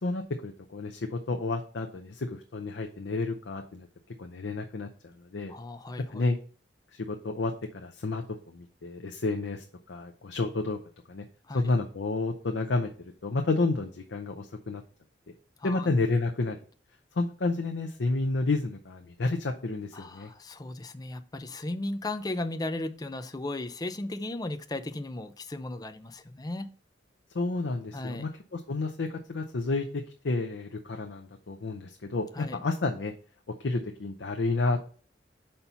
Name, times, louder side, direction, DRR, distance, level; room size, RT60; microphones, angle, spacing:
voice 1, 0.0-3.9 4.2-5.5 6.0-6.4 6.9-10.8 11.1-11.2 11.5-14.8 15.6-16.6 17.1-20.3 27.3-33.1 33.6-34.8, left 3 dB, 80° left, 4 dB, 0.6 m, -30 dB
voice 2, 5.5-6.2 11.5-11.6 15.6-15.9 19.9-26.7 27.9-28.2 32.4-32.6, left 2 dB, 20° left, 9 dB, 0.5 m, -36 dB
5.5 x 4.4 x 5.5 m, 0.41 s
head